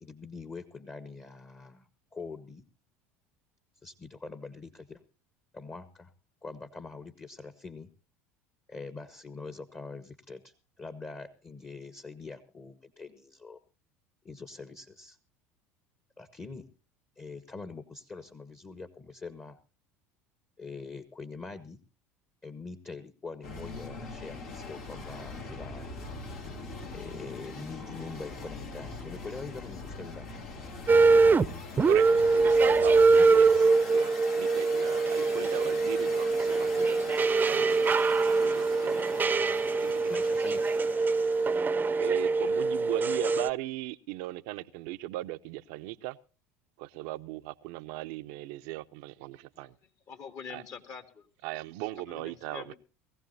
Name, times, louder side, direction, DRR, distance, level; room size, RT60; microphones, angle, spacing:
voice 1, 0.0-2.6 3.8-5.0 5.5-6.1 6.4-7.9 8.7-13.6 14.2-15.2 16.2-16.6 17.2-19.6 20.6-21.8 22.4-25.9 26.9-30.3 34.6-34.7 40.1-40.7, left 4 dB, 25° left, 1.3 m, -44 dB
sound 1, 23.4-41.7, left 3 dB, 75° left, 4.4 m, -42 dB
sound 2, 30.9-31.5 31.8-43.5, right 4 dB, 25° right, 0.7 m, -24 dB
voice 2, 32.3-37.0 37.4-37.8 38.1-39.2 39.8-40.1 42.0-46.2 46.8-49.7 50.5-50.6 51.4-52.7, right 17 dB, 65° right, 0.6 m, -38 dB
voice 3, 50.1-51.3 52.0-52.8, left 6 dB, 50° left, 2.4 m, -45 dB
20.5 x 15.5 x 2.7 m
hypercardioid pair, 75°, 7 cm